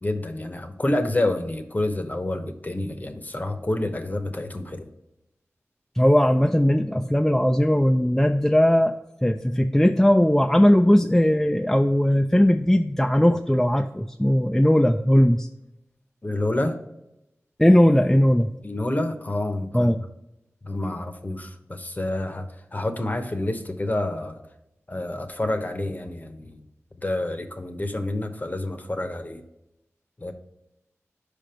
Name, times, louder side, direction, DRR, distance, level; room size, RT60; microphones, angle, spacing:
voice 1, 0.0-4.9 16.2-16.8 18.6-19.9 20.6-24.4 24.9-26.6 27.0-29.4 30.2-30.3, left 1 dB, 30° left, 7 dB, 0.8 m, -28 dB
voice 2, 6.0-8.9 9.2-15.5 17.6-18.5 19.7-20.0, equal, 5° left, 5 dB, 0.3 m, -19 dB
5.2 x 5.0 x 4.3 m, 0.88 s
wide cardioid pair, 55°, 5 cm